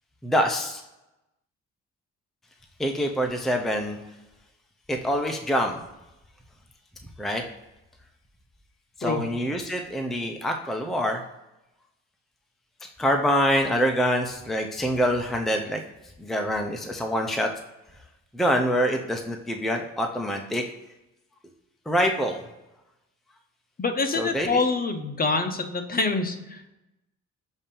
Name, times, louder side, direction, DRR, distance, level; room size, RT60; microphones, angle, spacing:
voice 1, 0.2-0.8 2.8-4.0 4.9-5.8 7.2-7.4 9.0-11.2 13.0-17.5 18.3-20.7 21.9-22.4 24.1-24.6, equal, ahead, 3 dB, 0.6 m, -25 dB
voice 2, 23.8-26.7, left 3 dB, 30° left, 6 dB, 0.9 m, -26 dB
7.1 x 2.8 x 5.3 m, 0.94 s
cardioid pair, 90°, 30 cm